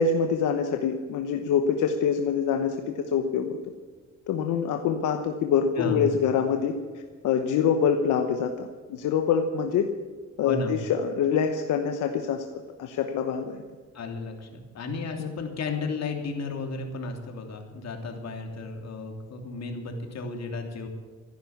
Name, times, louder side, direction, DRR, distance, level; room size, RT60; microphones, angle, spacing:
voice 1, 0.0-3.6 4.3-6.7 7.2-9.9 10.4-12.4 12.8-13.6 15.2-15.3, left 7 dB, 85° left, 5 dB, 1.1 m, -25 dB
voice 2, 10.4-10.8 13.9-20.9, left 3 dB, 60° left, 3 dB, 3.1 m, -33 dB
15.0 x 11.0 x 7.2 m, 1.5 s
cardioid pair, 90°, 30 cm